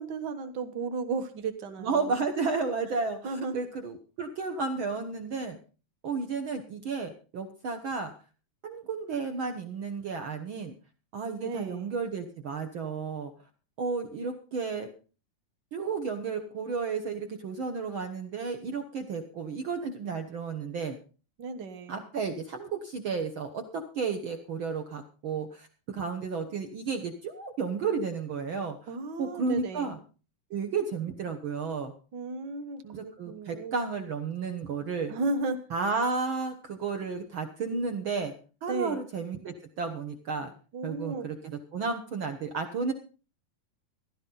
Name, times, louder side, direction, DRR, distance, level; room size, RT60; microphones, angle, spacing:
voice 1, 0.0-2.1 3.2-3.5 11.4-11.9 21.4-22.0 28.9-29.9 32.1-33.8 35.1-35.6 38.7-39.0 40.7-41.3, right 3 dB, 55° right, 7 dB, 1.3 m, -34 dB
voice 2, 1.8-5.6 6.0-8.1 8.6-10.7 11.1-13.3 13.8-14.9 15.7-21.0 21.9-28.9 29.2-30.0 30.5-31.9 32.8-35.1 35.7-38.3 38.6-40.5 40.8-42.9, right 4 dB, 75° right, 6 dB, 1.1 m, -32 dB
15.5 x 12.5 x 3.9 m, 0.36 s
omnidirectional pair, 3.8 m